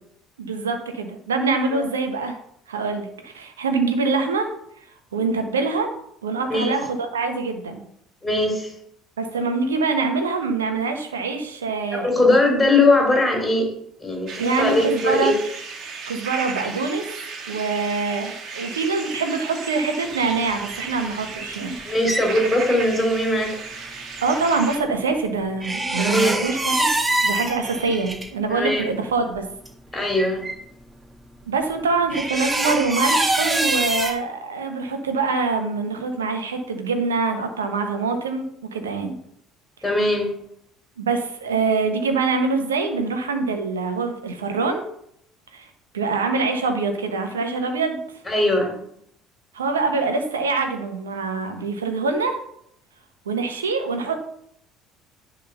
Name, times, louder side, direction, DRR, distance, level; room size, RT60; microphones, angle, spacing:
voice 1, 0.4-2.4 2.7-4.5 5.1-5.9 6.2-7.8 9.2-12.4 14.4-15.4 16.1-17.1 17.5-21.8 24.2-26.9 27.2-29.5 31.5-38.4 38.7-39.1 41.0-44.8 45.5-48.0 49.5-52.4 53.2-54.2, right 4 dB, 80° right, 6 dB, 1.2 m, -24 dB
voice 2, 8.2-8.7 11.9-13.7 14.0-15.3 21.8-23.5 26.0-26.3 28.5-28.8 29.9-30.5 39.8-40.3 48.3-48.8, left 2 dB, 10° left, 0 dB, 3.4 m, -20 dB
sound 1, 14.3-24.8, right 4 dB, 50° right, 1.8 m, -35 dB
sound 2, 21.5-22.2 25.6-28.2 29.3-29.4 29.6-29.7 30.1-30.5 32.1-34.1, right 2 dB, 20° right, 1.9 m, -24 dB
10.5 x 3.8 x 6.8 m, 0.70 s
figure-of-eight pair, 60°, 0 cm